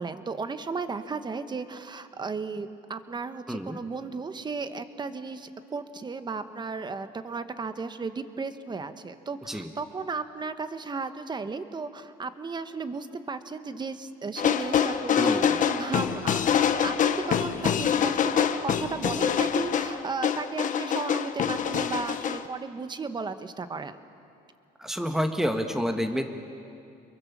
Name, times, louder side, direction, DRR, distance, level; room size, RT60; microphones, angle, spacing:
voice 1, 0.0-24.0, right 4 dB, 25° right, 10 dB, 1.3 m, -35 dB
voice 2, 3.5-3.8 9.5-9.7 15.2-15.6 24.8-26.2, equal, 5° right, 5 dB, 1.7 m, -28 dB
sound 1, 14.4-22.4, left 8 dB, 50° left, 1.2 m, -25 dB
29.5 x 22.5 x 7.4 m, 2.5 s
cardioid pair, 110°, 17 cm